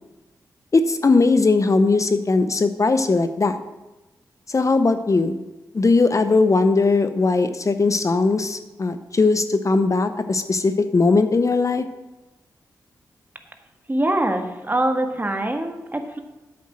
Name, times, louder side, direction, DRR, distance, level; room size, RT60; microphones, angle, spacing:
voice 1, 0.7-3.6 4.5-5.4 5.7-11.9, left 3 dB, 45° left, 10 dB, 0.7 m, -19 dB
voice 2, 13.9-16.2, right 1 dB, 25° right, 5 dB, 1.7 m, -23 dB
8.6 x 8.3 x 6.2 m, 1.1 s
supercardioid pair, 40°, 8 cm